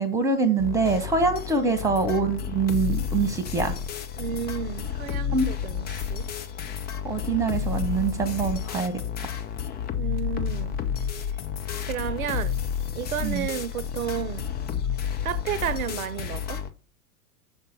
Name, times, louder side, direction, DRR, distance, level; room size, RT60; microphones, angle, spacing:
voice 1, 0.0-3.7 5.3-5.5 7.0-9.0 13.2-13.5, right 4 dB, 5° right, 1.5 m, -24 dB
sound 1, 0.6-16.7, left 8 dB, 20° left, 0.7 m, -31 dB
voice 2, 4.2-6.3 10.0-10.8 11.9-12.6 12.9-14.5 15.2-16.6, right 9 dB, 60° right, 0.9 m, -32 dB
7.1 x 5.5 x 5.1 m
figure-of-eight pair, 95°, 48 cm